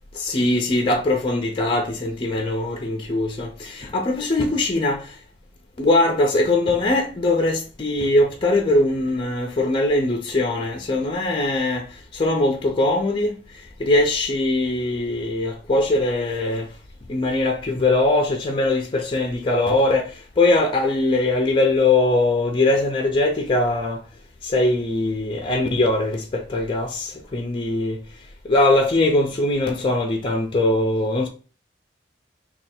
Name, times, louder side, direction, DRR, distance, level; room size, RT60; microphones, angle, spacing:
voice 1, 0.1-5.2 5.8-11.9 12.1-13.4 13.8-16.7 17.1-24.0 24.4-28.0 28.4-31.3, left 2 dB, 30° left, 0.5 m, -21 dB
3.3 x 2.3 x 4.2 m
head